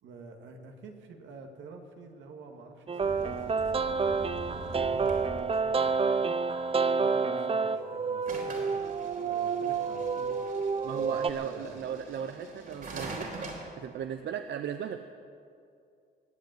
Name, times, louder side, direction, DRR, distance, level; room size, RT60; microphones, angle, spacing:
voice 1, 0.0-3.6 3.8-6.4 6.8-8.9 9.2-10.4 10.9-11.8, right 3 dB, 85° right, 3 dB, 2.1 m, -48 dB
sound 1, 2.9-11.3, right 5 dB, 30° right, 0.6 m, -29 dB
sound 2, 3.0-5.7 8.3-13.7, right 2 dB, 50° right, 3.8 m, -43 dB
voice 2, 10.8-13.3 13.8-15.0, right 8 dB, 70° right, 8 dB, 0.7 m, -36 dB
19.5 x 8.1 x 9.1 m, 2.4 s
cardioid pair, 100°, 19 cm